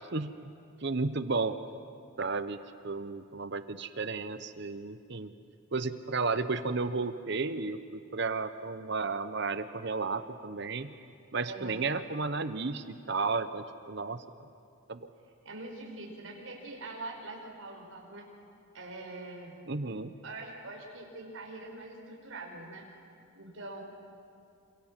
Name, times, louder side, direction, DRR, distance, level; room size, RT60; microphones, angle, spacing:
voice 1, 0.1-0.5 0.8-1.6 2.2-5.3 5.7-10.9 11.3-14.2 14.9-15.1 19.7-20.1, right 4 dB, 55° right, 11 dB, 0.9 m, -33 dB
voice 2, 11.5-11.8 15.4-18.3 18.7-19.6 20.2-22.9 23.3-23.8, right 2 dB, 70° right, 0 dB, 4.9 m, -43 dB
27.5 x 26.5 x 7.5 m, 2.5 s
head